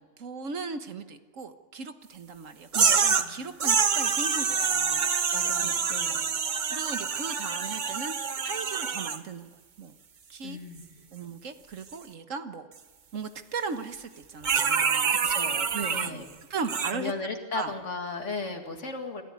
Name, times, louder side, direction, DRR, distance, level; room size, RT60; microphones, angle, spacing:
voice 1, 0.2-5.1 5.6-5.7 6.7-9.9 10.3-10.6 11.1-12.7 13.1-15.3 15.7-16.2 16.5-17.1 17.5-17.7, right 5 dB, 80° right, 9 dB, 1.7 m, -37 dB
sound 1, 2.7-3.3 3.6-9.2 14.4-16.1 16.6-16.9, right 6 dB, 40° right, 0.9 m, -26 dB
voice 2, 5.3-6.3 10.4-10.8 15.1-16.3 16.9-19.2, left 3 dB, 70° left, 4 dB, 2.5 m, -36 dB
26.0 x 14.5 x 9.5 m, 1.5 s
omnidirectional pair, 1.3 m